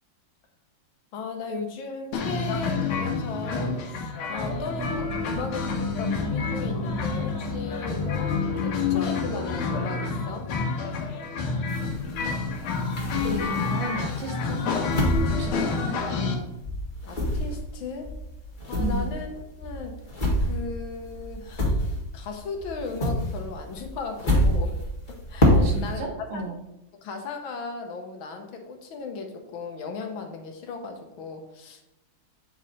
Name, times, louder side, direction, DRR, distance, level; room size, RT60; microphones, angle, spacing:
voice 1, 1.1-10.5 17.1-18.1 18.7-19.3 19.6-20.0 20.4-24.7 25.1-26.0 26.3-26.5 27.0-31.8, left 4 dB, 75° left, 4 dB, 1.8 m, -36 dB
sound 1, 2.1-16.3, left 5 dB, 90° left, 1.9 m, -28 dB
sound 2, 4.4-9.6, equal, 35° right, 2.6 m, -35 dB
sound 3, 11.7-13.8 14.3-16.4 16.6-22.3 22.6-26.0, equal, 25° left, 1.5 m, -26 dB
voice 2, 12.3-12.7 13.2-14.9 15.3-16.0 18.8-19.1 25.5-26.6, right 3 dB, 85° right, 2 dB, 2.1 m, -34 dB
8.7 x 4.7 x 4.1 m, 0.92 s
omnidirectional pair, 2.3 m